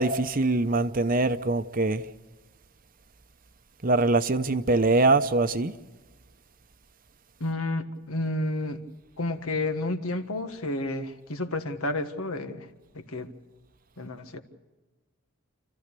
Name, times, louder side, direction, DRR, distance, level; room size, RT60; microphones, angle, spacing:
voice 1, 0.0-2.0 3.8-5.7, right 2 dB, 40° right, 0.8 m, -23 dB
voice 2, 7.4-8.8 9.2-12.7 12.9-13.3 14.0-14.4, left 2 dB, 80° left, 1.6 m, -31 dB
28.5 x 14.5 x 6.8 m
head